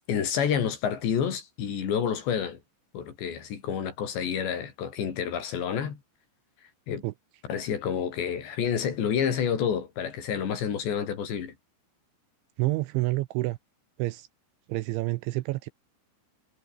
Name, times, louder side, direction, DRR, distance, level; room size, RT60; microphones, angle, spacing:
voice 1, 0.1-2.6 2.9-6.0 6.9-7.0 7.4-11.5, left 8 dB, 60° left, 5.5 m, -29 dB
voice 2, 12.6-13.6 14.0-14.3 14.7-15.7, right 20 dB, 85° right, 2.8 m, -28 dB
omnidirectional pair, 5.9 m